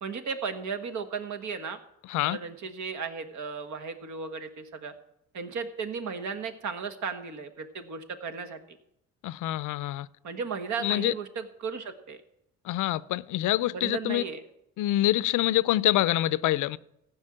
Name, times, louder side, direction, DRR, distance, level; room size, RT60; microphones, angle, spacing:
voice 1, 0.0-1.8 2.2-4.9 5.3-8.8 10.2-12.2 13.7-14.4, right 5 dB, 70° right, 1.5 m, -35 dB
voice 2, 9.2-10.1 10.8-11.1 12.6-14.2 14.8-16.8, left 15 dB, 85° left, 0.5 m, -26 dB
15.0 x 5.5 x 8.7 m
cardioid pair, 90°, 30 cm